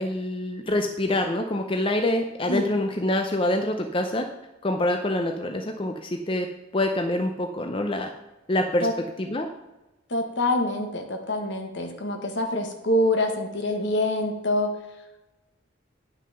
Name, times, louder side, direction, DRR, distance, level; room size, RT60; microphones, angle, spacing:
voice 1, 0.0-4.3 4.6-6.5 6.7-8.1 8.5-8.9 9.2-9.5, left 1 dB, 25° left, 5 dB, 0.6 m, -26 dB
voice 2, 10.1-14.7, left 1 dB, 65° left, 4 dB, 1.5 m, -25 dB
9.8 x 6.1 x 5.8 m, 1.0 s
head